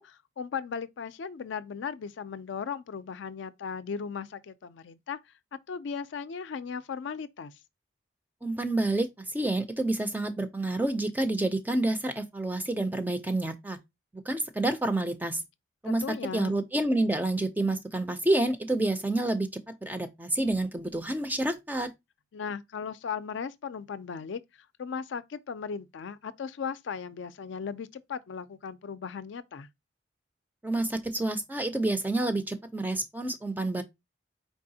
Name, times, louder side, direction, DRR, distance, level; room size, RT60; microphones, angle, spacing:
voice 1, 0.0-5.2 5.7-7.5 15.8-16.5 22.3-29.7, left 6 dB, 70° left, 0.4 m, -37 dB
voice 2, 8.4-13.8 14.1-15.4 15.8-21.9 30.6-33.8, right 2 dB, 10° right, 0.4 m, -29 dB
4.6 x 3.4 x 2.7 m
head